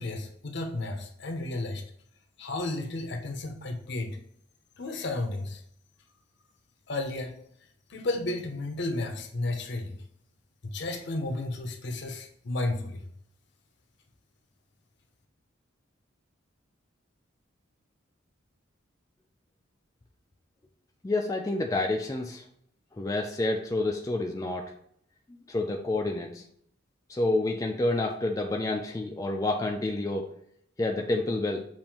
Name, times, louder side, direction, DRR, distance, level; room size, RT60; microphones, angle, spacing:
voice 1, 0.0-1.8 2.4-4.2 4.8-5.6 6.9-7.4 7.9-10.0 10.6-13.0, left 2 dB, 60° left, 6 dB, 0.7 m, -33 dB
voice 2, 21.0-22.4 23.0-24.7 25.5-26.4 27.1-30.3 30.8-31.7, left 2 dB, 15° left, 1 dB, 0.3 m, -29 dB
7.1 x 2.5 x 2.9 m, 0.68 s
head